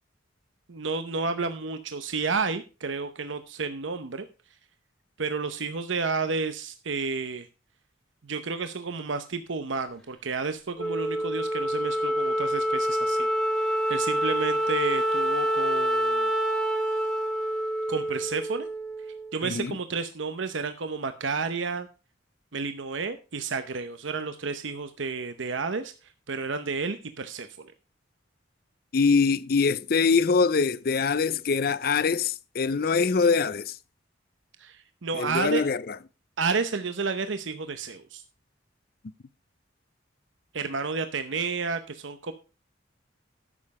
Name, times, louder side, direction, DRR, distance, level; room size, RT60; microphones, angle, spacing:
voice 1, 0.7-4.2 5.2-7.5 8.2-13.3 13.6-16.3 17.9-18.7 19.3-21.9 22.5-25.9 26.3-27.7 34.6-35.6 36.4-38.2 40.5-42.3, right 4 dB, 80° right, 0.8 m, -31 dB
Wind instrument woodwind instrument, 10.8-19.4, right 1 dB, ahead, 1.5 m, -27 dB
voice 2, 19.4-19.8 28.9-33.8 35.1-36.0, left 5 dB, 50° left, 0.5 m, -24 dB
11.0 x 7.6 x 4.7 m
head